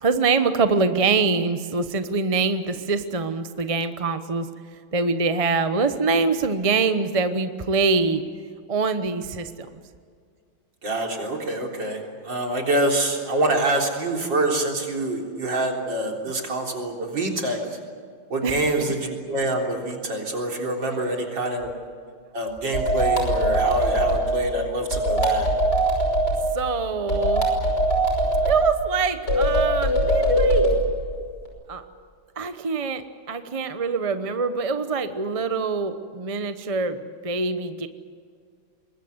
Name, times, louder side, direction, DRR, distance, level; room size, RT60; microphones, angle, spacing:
voice 1, 0.0-4.5 4.9-8.2 8.7-9.7 18.4-18.6 26.5-27.4 28.4-30.7 31.7-31.8 32.4-37.9, right 4 dB, 25° right, 9 dB, 0.7 m, -24 dB
voice 2, 10.8-17.8 18.3-21.7 22.3-25.5 34.5-34.6, right 1 dB, 65° right, 1 dB, 4.3 m, -26 dB
sound 1, 22.7-24.3 24.9-26.4 27.1-28.6 29.3-30.8, right 1 dB, 55° left, 6.2 m, -21 dB
25.0 x 21.5 x 8.1 m, 2.1 s
omnidirectional pair, 2.2 m